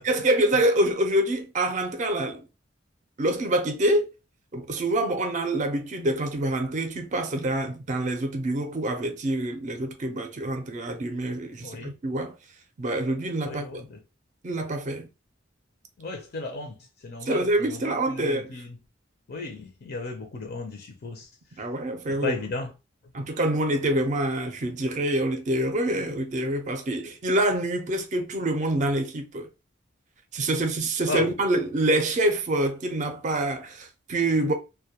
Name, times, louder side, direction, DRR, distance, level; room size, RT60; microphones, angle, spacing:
voice 1, 0.0-2.4 3.2-4.1 4.5-12.4 12.8-13.9 14.4-15.1 17.2-18.5 21.6-22.4 23.1-29.5 30.3-34.5, right 1 dB, 40° right, 0.4 m, -26 dB
voice 2, 11.6-11.9 13.4-14.0 16.0-16.8 17.0-18.8 19.3-21.3 22.1-22.7 31.1-31.3, left 3 dB, 55° left, 0.5 m, -35 dB
2.2 x 2.1 x 2.8 m
head